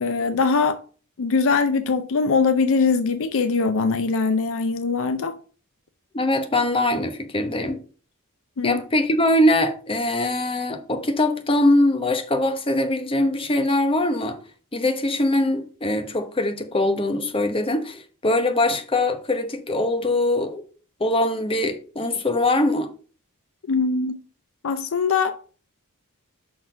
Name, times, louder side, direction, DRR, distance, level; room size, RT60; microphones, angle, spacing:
voice 1, 0.0-0.8 1.2-5.3 8.6-8.8 23.7-24.2 24.6-25.6, left 4 dB, 60° left, 0.5 m, -22 dB
voice 2, 6.1-7.8 8.6-14.4 14.7-20.6 21.0-22.9, left 1 dB, 25° left, 0.9 m, -22 dB
6.0 x 4.3 x 5.1 m
head